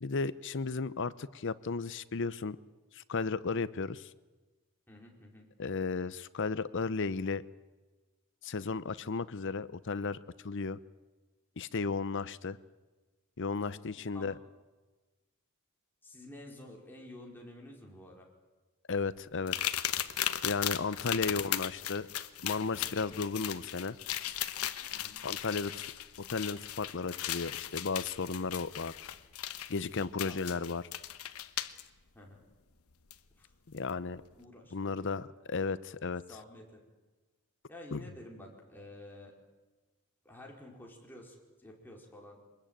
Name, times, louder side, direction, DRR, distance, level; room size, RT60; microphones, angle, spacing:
voice 1, 0.0-2.6 2.9-4.1 5.6-7.4 8.4-10.2 10.4-10.8 11.6-12.6 13.4-14.3 18.9-19.7 20.4-22.1 22.4-24.0 25.2-25.9 26.3-29.0 29.7-30.9 33.7-34.2 34.7-36.2 37.9-38.0, left 4 dB, 55° left, 16 dB, 0.7 m, -34 dB
voice 2, 4.9-5.5 13.7-13.8 14.1-14.3 16.0-18.2 24.9-25.2 30.3-30.4 32.1-32.4 33.4-33.5 34.4-35.3 36.3-36.8 37.7-39.3 40.2-42.4, left 1 dB, 10° left, -1 dB, 4.6 m, -51 dB
sound 1, 19.5-31.8 33.1-33.2 33.8-33.9, left 11 dB, 75° left, 1.1 m, -37 dB
23.5 x 20.5 x 9.0 m, 1.2 s
head